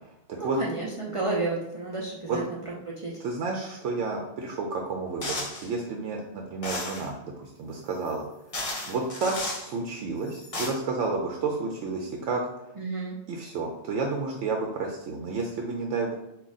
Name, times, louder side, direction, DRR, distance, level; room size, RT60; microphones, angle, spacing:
voice 1, 0.4-2.4 2.9-3.1 12.8-13.2, right 3 dB, 45° right, -5 dB, 0.4 m, -31 dB
voice 2, 3.2-8.3 8.9-12.4 13.3-16.2, right 4 dB, 85° right, 1 dB, 0.9 m, -31 dB
sound 1, 5.2-5.7 6.6-7.1 8.1-8.2 8.5-9.7 10.3-10.7, left 2 dB, 35° left, 0.8 m, -33 dB
3.6 x 2.5 x 4.0 m, 0.88 s
omnidirectional pair, 1.2 m